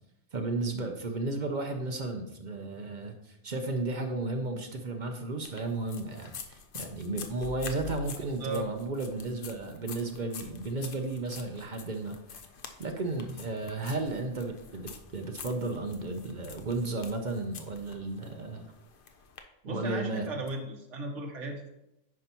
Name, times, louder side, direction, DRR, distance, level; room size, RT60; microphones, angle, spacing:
voice 1, 0.3-12.4 12.8-18.6 19.7-20.3, right 2 dB, 45° right, 4 dB, 0.7 m, -34 dB
sound 1, 5.4-19.4, left 5 dB, 55° left, 0.7 m, -47 dB
voice 2, 19.6-21.7, right 2 dB, 75° right, 2 dB, 1.5 m, -36 dB
9.3 x 5.5 x 2.9 m, 0.86 s
omnidirectional pair, 1.3 m